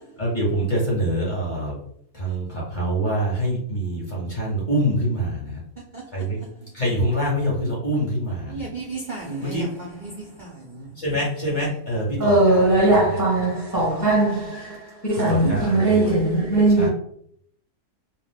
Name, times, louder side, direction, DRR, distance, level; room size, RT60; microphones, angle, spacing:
voice 1, 0.2-1.8 2.1-5.6 6.1-6.4 6.7-8.7 9.4-9.7 11.0-13.0 13.3-13.7 14.5-16.2 16.8-16.9, right 1 dB, 40° left, 0.8 m, -26 dB
voice 2, 8.5-10.9, right 3 dB, 65° right, 0.4 m, -34 dB
voice 3, 12.2-14.8 15.0-16.9, right 2 dB, 20° left, 0.5 m, -19 dB
2.6 x 2.1 x 3.3 m
omnidirectional pair, 1.6 m